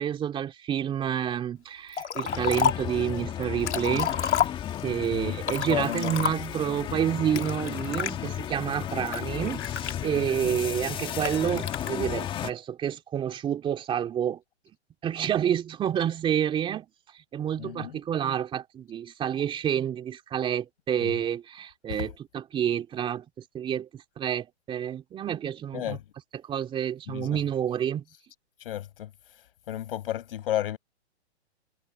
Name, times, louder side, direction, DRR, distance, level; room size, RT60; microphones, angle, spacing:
voice 1, 0.0-4.3 4.8-9.7 10.0-14.4 15.0-16.9 17.1-23.2 23.5-26.0 26.3-28.0, right 9 dB, 15° right, 3.2 m, -29 dB
Liquid, 1.9-3.0 3.4-5.0 5.4-6.7 7.4-8.1 8.7-10.4 11.2-11.9, left 8 dB, 85° left, 2.5 m, -29 dB
sound 1, 2.2-12.5, left 10 dB, 15° left, 1.5 m, -34 dB
voice 2, 5.1-6.3 10.4-10.5 17.6-18.0 21.0-21.1 21.9-22.0 25.7-26.0 27.1-27.4 28.6-29.1 29.7-30.8, left 12 dB, 55° left, 5.9 m, -33 dB
hypercardioid pair, 150°, 34 cm